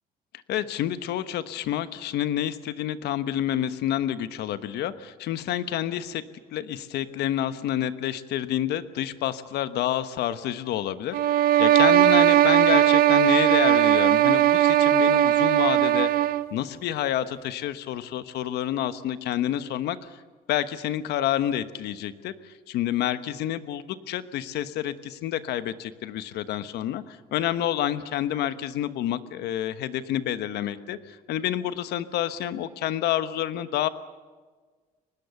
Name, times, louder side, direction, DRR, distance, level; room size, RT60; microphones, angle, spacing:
voice 1, 0.5-6.2 6.5-16.1 16.5-20.2 20.5-33.9, left 11 dB, 75° left, 12 dB, 1.2 m, -28 dB
sound 1, 11.1-16.5, right 12 dB, 60° right, 0.8 m, -19 dB
23.5 x 20.0 x 7.0 m, 1.4 s
cardioid pair, 110°, 17 cm